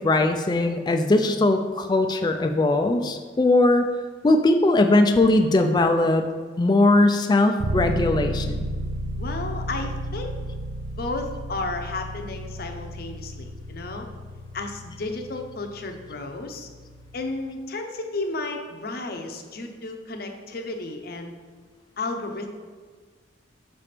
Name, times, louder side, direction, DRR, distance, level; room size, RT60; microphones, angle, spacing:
voice 1, 0.0-3.9 4.2-6.2 6.6-8.7, left 2 dB, 20° left, 5 dB, 0.3 m, -20 dB
sound 1, 7.6-17.3, equal, 75° right, 0.5 m, -33 dB
voice 2, 9.2-10.3 11.0-14.1 14.5-16.7 17.1-21.4 22.0-22.5, left 2 dB, 50° left, 4 dB, 0.7 m, -33 dB
6.0 x 3.3 x 5.8 m, 1.5 s
head